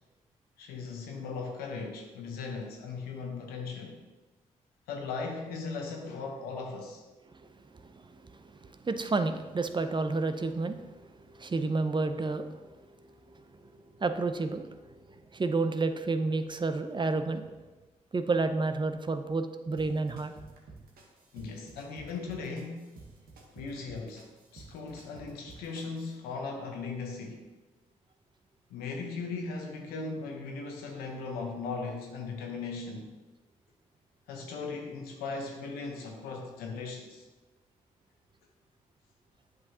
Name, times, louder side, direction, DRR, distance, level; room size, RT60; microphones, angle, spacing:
voice 1, 0.6-4.0 4.9-7.0 21.3-22.9 23.5-27.4 28.7-33.1 34.3-37.3, left 4 dB, 90° left, 1 dB, 0.9 m, -38 dB
voice 2, 7.7-8.2 8.6-10.8 11.3-12.5 13.3-13.4 14.0-14.7 15.3-17.4 18.1-20.3, right 3 dB, 30° right, 9 dB, 0.6 m, -30 dB
sound 1, 19.8-26.1, right 3 dB, 75° right, 1.1 m, -52 dB
7.9 x 5.4 x 2.8 m, 1.2 s
supercardioid pair, 45°, 15 cm